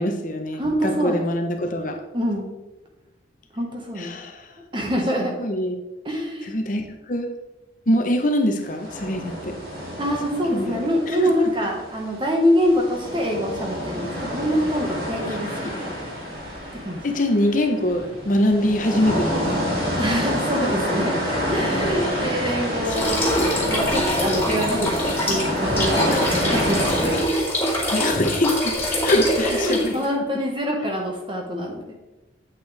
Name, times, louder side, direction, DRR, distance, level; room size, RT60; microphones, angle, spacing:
voice 1, 0.0-2.0 4.0-4.5 5.2-5.7 6.4-7.3 7.9-9.6 10.5-10.8 11.1-11.3 15.2-15.7 17.0-19.8 21.9-22.3 26.1-26.3 27.9-28.8 29.0-30.0, left 1 dB, 45° left, 4 dB, 0.9 m, -24 dB
voice 2, 0.6-1.2 2.1-2.5 3.5-4.1 4.7-5.4 6.0-6.5 10.0-16.0 16.7-17.0 20.0-23.3 23.7-27.2 29.4-31.9, equal, 25° right, 0 dB, 1.5 m, -25 dB
sound 1, 8.8-12.3 12.6-27.2, equal, 55° right, 2.8 m, -28 dB
sound 2, 17.9-24.5, left 1 dB, 70° left, 1.3 m, -39 dB
sound 3, 22.9-30.1, left 1 dB, 15° left, 2.4 m, -24 dB
8.6 x 8.1 x 3.4 m, 1.1 s
head